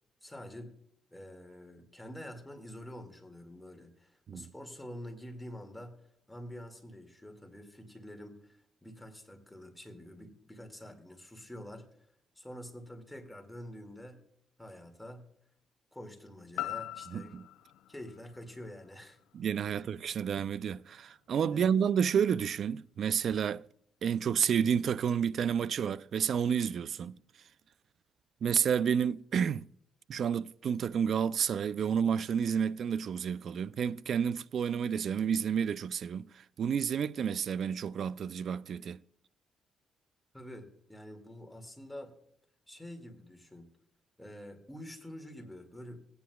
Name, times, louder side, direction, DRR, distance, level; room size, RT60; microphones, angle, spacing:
voice 1, 0.2-0.7 1.1-11.9 12.4-14.2 14.6-15.3 15.9-17.3 17.9-19.2 19.7-19.8 21.5-21.7 40.3-42.2 42.7-43.7 44.2-46.0, left 1 dB, 5° left, 2.1 m, -47 dB
sound 1, 16.6-20.6 21.1-21.2, left 16 dB, 85° left, 0.5 m, -43 dB
voice 2, 17.1-17.4 19.3-23.6 24.0-27.2 28.4-29.7 30.1-39.0, right 7 dB, 60° right, 0.3 m, -30 dB
17.5 x 9.4 x 2.3 m
cardioid pair, 90°, 0 cm